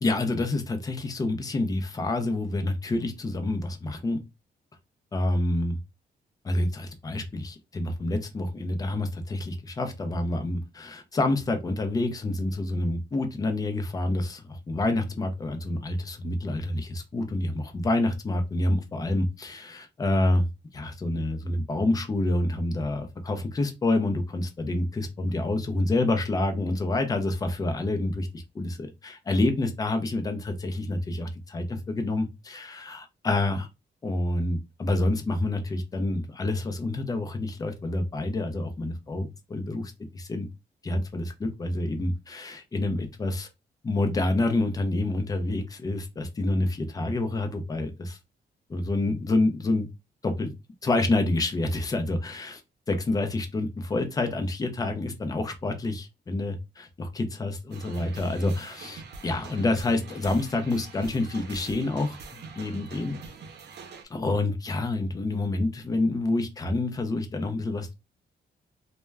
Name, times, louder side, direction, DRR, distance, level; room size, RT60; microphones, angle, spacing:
voice 1, 0.0-4.2 5.1-5.8 6.4-20.5 20.7-33.7 34.0-40.5 40.8-43.5 43.8-48.2 48.7-49.9 50.2-50.5 50.8-52.6 52.9-63.2 64.1-67.9, left 2 dB, 20° left, 0.4 m, -28 dB
sound 1, 57.7-64.0, right 4 dB, 85° right, 0.5 m, -44 dB
2.2 x 2.1 x 3.2 m
wide cardioid pair, 165°, 17 cm